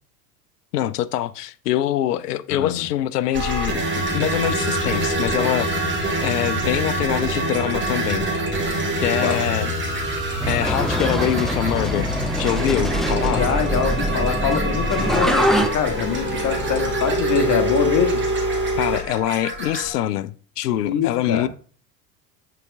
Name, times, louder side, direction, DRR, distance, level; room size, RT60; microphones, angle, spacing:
voice 1, 0.7-5.7 6.2-8.3 9.0-9.7 10.5-12.1 12.4-13.4 18.8-21.5, left 12 dB, 75° left, 0.6 m, -24 dB
voice 2, 2.5-2.9 9.0-9.5 12.9-18.2 20.8-21.5, left 7 dB, 35° left, 1.6 m, -24 dB
sound 1, 3.3-19.9, right 1 dB, 25° right, 2.4 m, -25 dB
sound 2, 10.4-15.7, equal, ahead, 0.8 m, -24 dB
9.5 x 4.2 x 3.6 m
figure-of-eight pair, 75°, 49 cm